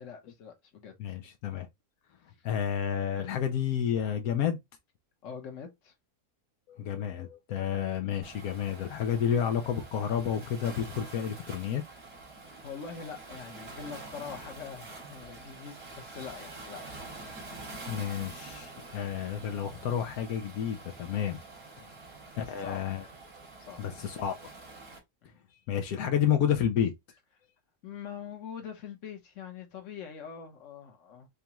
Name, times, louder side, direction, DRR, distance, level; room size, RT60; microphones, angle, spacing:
voice 1, 0.0-0.9 5.2-5.9 12.6-16.9 21.8-22.0 22.4-22.8 23.6-23.8 25.2-25.3 27.8-31.3, left 7 dB, 60° left, 1.4 m, -43 dB
voice 2, 1.0-1.7 2.4-4.6 6.7-11.8 17.9-21.4 22.4-23.1 23.8-24.3 25.7-26.9, left 9 dB, 85° left, 1.1 m, -30 dB
Waves surf, 8.2-25.0, right 3 dB, 75° right, 2.3 m, -46 dB
5.1 x 2.3 x 2.8 m
omnidirectional pair, 1.5 m